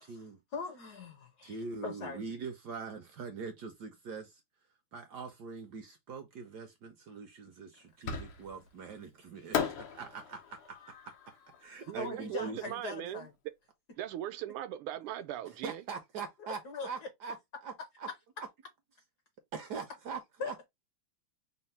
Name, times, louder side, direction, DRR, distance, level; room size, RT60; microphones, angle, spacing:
voice 1, 0.0-0.4 1.4-4.4 4.9-10.8 11.1-11.2 11.6-12.7 15.6-17.4 17.6-17.7 18.0-18.1 19.5-20.5, right 5 dB, 70° right, 1.0 m, -43 dB
voice 2, 0.5-1.6 1.8-2.2 12.0-13.3 16.4-17.1 20.4-20.7, left 4 dB, 60° left, 1.1 m, -41 dB
Fireworks, 8.1-8.7 9.5-12.7, left 7 dB, 85° left, 1.8 m, -38 dB
voice 3, 11.9-13.2 14.0-15.8, right 12 dB, 90° right, 1.5 m, -39 dB
4.3 x 2.1 x 4.1 m
omnidirectional pair, 2.4 m